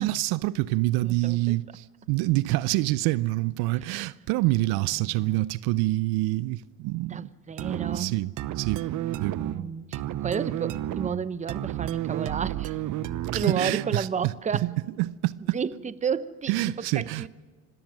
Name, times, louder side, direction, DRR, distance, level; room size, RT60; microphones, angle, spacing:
voice 1, 0.0-7.2 7.9-8.8 9.2-9.4 13.3-14.3 14.6-15.6 16.5-17.3, right 18 dB, 65° right, 0.7 m, -26 dB
voice 2, 1.0-1.6 5.0-5.4 7.1-8.1 9.4-12.7 13.3-14.7 15.5-17.3, right 6 dB, 15° right, 0.8 m, -32 dB
sound 1, 7.6-14.1, right 12 dB, 50° right, 0.9 m, -31 dB
26.0 x 18.0 x 6.2 m
supercardioid pair, 90°, 41 cm